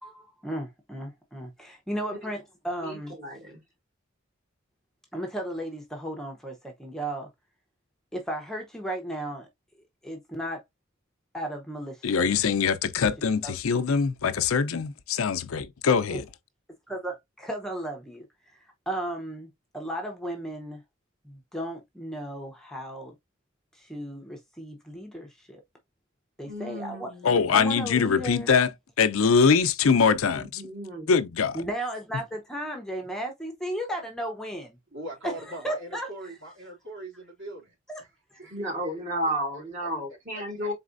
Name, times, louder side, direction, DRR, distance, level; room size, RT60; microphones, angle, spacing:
voice 1, 0.0-3.2 5.1-7.3 8.1-9.5 10.0-10.6 11.3-12.4 13.4-13.5 16.1-16.2 16.9-18.6 18.9-20.8 21.2-23.1 23.7-25.6 26.4-27.1 27.5-28.5 31.5-34.8 35.2-36.1 37.9-38.0 38.3-38.4, right 1 dB, 5° left, 0.7 m, -35 dB
voice 2, 2.8-3.6 26.5-27.6 30.3-31.1 38.5-40.7, right 1 dB, 40° right, 2.3 m, -33 dB
voice 3, 12.0-16.2 27.2-28.7 29.0-30.6 31.1-31.6, left 5 dB, 85° left, 0.5 m, -23 dB
voice 4, 34.9-38.1 38.3-39.9 40.3-40.7, right 1 dB, 60° right, 2.8 m, -42 dB
4.2 x 4.0 x 2.5 m
head